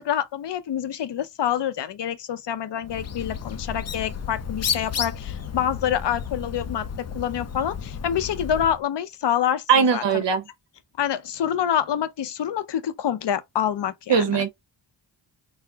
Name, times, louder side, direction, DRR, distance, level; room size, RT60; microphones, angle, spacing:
voice 1, 0.0-10.2 11.0-14.4, left 9 dB, 70° left, 0.7 m, -27 dB
Bird, 2.8-8.8, left 7 dB, 35° left, 0.5 m, -32 dB
voice 2, 9.7-10.4 14.1-14.5, right 6 dB, 70° right, 1.1 m, -20 dB
4.0 x 2.0 x 2.8 m
cardioid pair, 75°, 44 cm